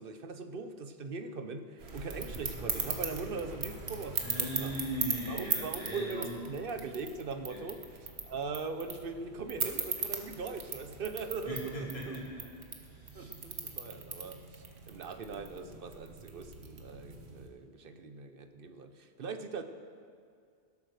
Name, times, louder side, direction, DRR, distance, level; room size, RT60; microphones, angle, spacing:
voice 1, 0.0-4.7 5.3-12.2 13.1-19.6, right 4 dB, 65° right, 8 dB, 1.0 m, -41 dB
sound 1, 1.8-17.5, right 4 dB, 85° right, 1.6 m, -39 dB
voice 2, 4.1-6.5 7.5-7.6 11.4-12.5 12.8-13.3, equal, 35° left, -6 dB, 3.5 m, -39 dB
16.5 x 8.6 x 6.5 m, 2.2 s
omnidirectional pair, 1.0 m